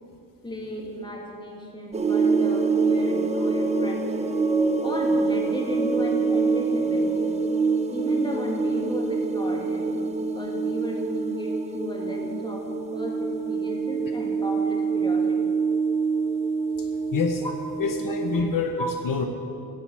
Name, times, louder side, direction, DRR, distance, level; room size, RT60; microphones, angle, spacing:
voice 1, 0.4-4.3 4.8-7.4 7.9-10.0 10.4-12.7 12.9-15.5 17.4-17.5 18.8-18.9, equal, 10° left, 0 dB, 1.8 m, -35 dB
sound 1, 1.9-18.4, right 4 dB, 20° right, 0.5 m, -25 dB
voice 2, 16.8-17.4 17.8-19.3, left 4 dB, 60° left, 4 dB, 0.9 m, -27 dB
10.5 x 8.1 x 7.4 m, 2.7 s
cardioid pair, 130°, 37 cm